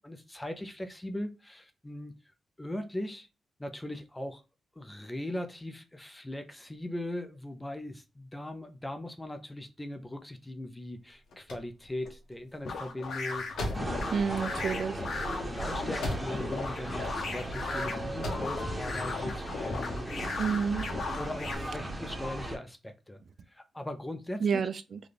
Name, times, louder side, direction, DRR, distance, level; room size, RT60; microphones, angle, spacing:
voice 1, 0.0-2.1 2.6-3.3 3.6-4.4 4.8-14.3 15.5-20.1 21.2-23.2 23.5-24.7, left 1 dB, 10° left, 0.4 m, -39 dB
sound 1, 11.0-16.6 16.9-17.7 18.0-18.6, left 1 dB, 90° left, 1.2 m, -39 dB
sound 2, 12.6-21.5, left 4 dB, 65° left, 0.8 m, -37 dB
sound 3, 13.7-22.6, right 1 dB, 15° right, 0.9 m, -37 dB
voice 2, 14.1-15.0 20.4-20.9 24.4-25.0, right 6 dB, 55° right, 0.3 m, -29 dB
3.9 x 2.2 x 3.3 m
cardioid pair, 120°, 0 cm